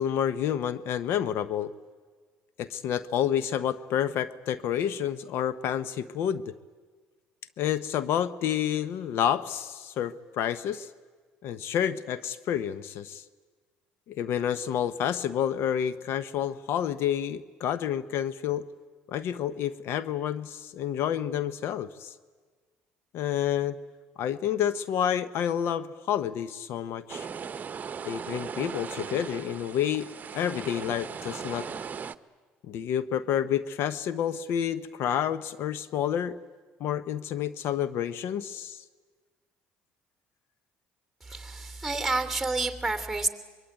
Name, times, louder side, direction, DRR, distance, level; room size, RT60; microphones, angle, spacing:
voice 1, 0.0-1.7 2.6-6.5 7.6-10.9 11.4-13.2 14.1-18.6 19.1-22.1 23.1-23.8 24.2-27.3 28.0-31.7 32.7-36.4 36.8-38.8, left 9 dB, 65° left, 15 dB, 0.9 m, -29 dB
Beach Waves Close, 27.1-32.2, right 6 dB, 40° right, 1.0 m, -38 dB
voice 2, 41.2-43.3, right 3 dB, 5° right, 8 dB, 3.0 m, -29 dB
24.5 x 22.5 x 9.4 m, 1.5 s
supercardioid pair, 75°, 4 cm